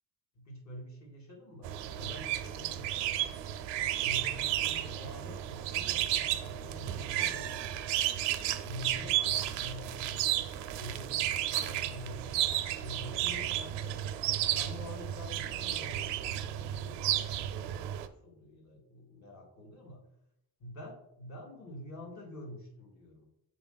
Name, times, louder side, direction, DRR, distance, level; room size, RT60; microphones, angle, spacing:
voice 1, 0.3-3.4 4.0-7.8 8.3-12.3 12.8-14.0 14.4-20.0 20.6-23.3, left 1 dB, 40° left, -1 dB, 2.4 m, -47 dB
sound 1, 1.6-18.1, right 12 dB, 90° right, 0.7 m, -33 dB
6.8 x 4.4 x 4.0 m, 0.78 s
cardioid pair, 130°, 42 cm